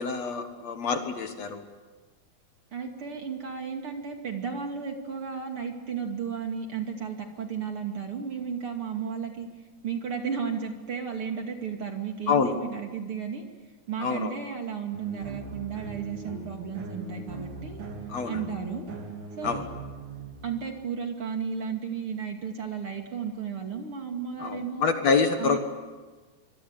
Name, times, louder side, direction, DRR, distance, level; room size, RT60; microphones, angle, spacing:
voice 1, 0.0-1.6 12.3-12.6 14.0-14.3 18.1-18.4 19.4-19.6 24.4-25.6, left 5 dB, 60° left, 7 dB, 2.5 m, -26 dB
voice 2, 2.7-9.5 9.8-13.4 13.9-17.8 18.2-18.9 19.4-19.6 20.4-24.9 25.4-25.6, right 6 dB, 45° right, 3 dB, 3.0 m, -34 dB
sound 1, 14.9-20.9, right 4 dB, 70° right, 4.8 m, -40 dB
24.5 x 24.5 x 8.3 m, 1.3 s
omnidirectional pair, 3.8 m